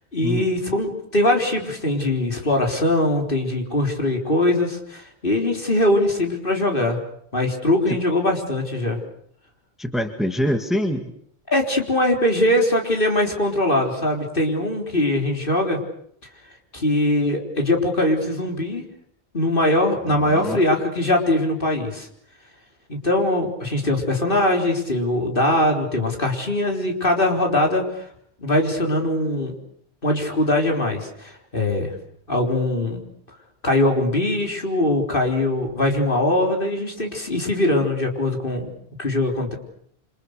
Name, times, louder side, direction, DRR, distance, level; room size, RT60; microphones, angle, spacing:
voice 1, 0.1-7.0 7.3-9.0 11.5-15.8 16.7-18.9 19.3-22.1 22.9-28.1 28.4-29.6 30.0-31.9 32.3-33.0 33.6-38.7 39.0-39.5, left 1 dB, 55° left, 2 dB, 4.3 m, -21 dB
voice 2, 9.8-11.1 20.1-20.6, equal, ahead, 6 dB, 2.0 m, -25 dB
27.5 x 26.5 x 6.7 m, 0.68 s
omnidirectional pair, 1.1 m